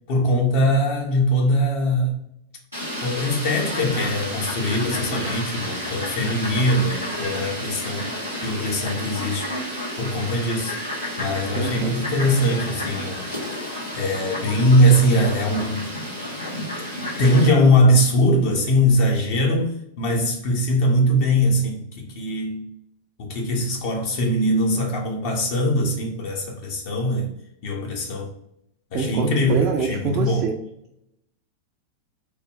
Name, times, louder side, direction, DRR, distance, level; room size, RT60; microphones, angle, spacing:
voice 1, 0.1-2.2 3.0-8.1 8.4-9.5 10.0-10.8 11.2-13.3 13.9-15.9 16.8-16.9 17.2-22.6 23.2-27.3 27.6-28.3 28.9-30.5, equal, 50° left, 0.7 m, -21 dB
Fowl, 2.7-17.5, left 1 dB, 85° left, 1.3 m, -31 dB
voice 2, 11.5-12.1 28.9-30.6, right 5 dB, 35° right, 0.4 m, -25 dB
3.4 x 2.1 x 3.5 m
figure-of-eight pair, 90°, 0 cm